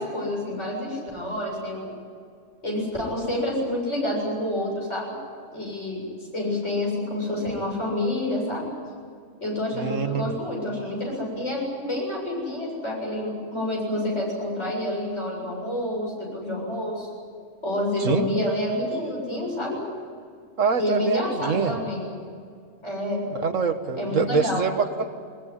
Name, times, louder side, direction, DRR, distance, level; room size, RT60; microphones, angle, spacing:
voice 1, 0.0-1.9 2.6-5.1 5.5-6.0 6.3-8.7 9.4-17.1 17.6-19.8 20.8-22.1 22.8-23.2 24.0-24.6, left 1 dB, 65° left, -2 dB, 8.1 m, -28 dB
voice 2, 9.7-10.3 18.0-18.3 20.6-21.8 23.3-25.1, right 5 dB, 85° right, 8 dB, 1.8 m, -25 dB
21.5 x 21.0 x 9.8 m, 2.2 s
omnidirectional pair, 1.3 m